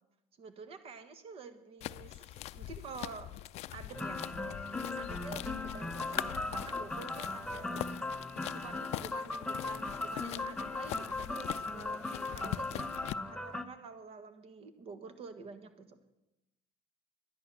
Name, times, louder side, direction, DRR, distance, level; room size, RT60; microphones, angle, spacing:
voice 1, 0.4-3.3 3.7-4.2 4.9-7.9 8.5-12.0 12.3-12.9 13.3-16.0, right 4 dB, 50° right, 10 dB, 1.5 m, -48 dB
sound 1, 1.8-13.2, left 14 dB, 60° left, 0.4 m, -43 dB
sound 2, 3.9-13.7, left 2 dB, 5° left, 0.8 m, -38 dB
11.0 x 10.5 x 7.0 m, 0.92 s
cardioid pair, 110°, 13 cm